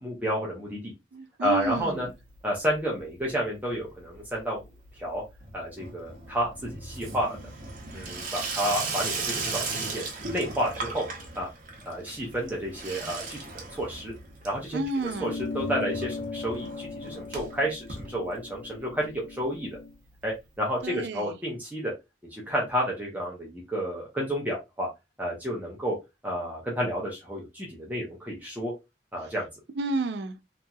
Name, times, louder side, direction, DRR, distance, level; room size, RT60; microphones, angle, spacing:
voice 1, 0.0-0.9 1.4-2.1 2.4-4.6 5.0-5.2 5.5-7.4 7.9-9.1 9.4-10.0 10.3-11.1 11.3-11.5 11.8-13.4 13.7-14.1 14.4-14.8 15.2-15.3 15.5-19.7 20.2-21.9 22.3-24.9 25.2-26.0 26.2-28.7 29.1-29.5, equal, 10° right, 0.7 m, -30 dB
voice 2, 1.1-2.1 14.7-15.4 20.8-21.4 29.8-30.4, right 2 dB, 75° right, 0.4 m, -31 dB
Water tap faucet / Sink (filling or washing), 1.6-2.4 2.6-3.2 3.5-18.8 19.1-19.2 19.4-19.5 19.7-19.8 20.8-20.9, right 3 dB, 50° right, 0.8 m, -37 dB
sound 1, 15.1-19.9, left 4 dB, 55° left, 0.3 m, -38 dB
2.9 x 2.7 x 2.2 m
head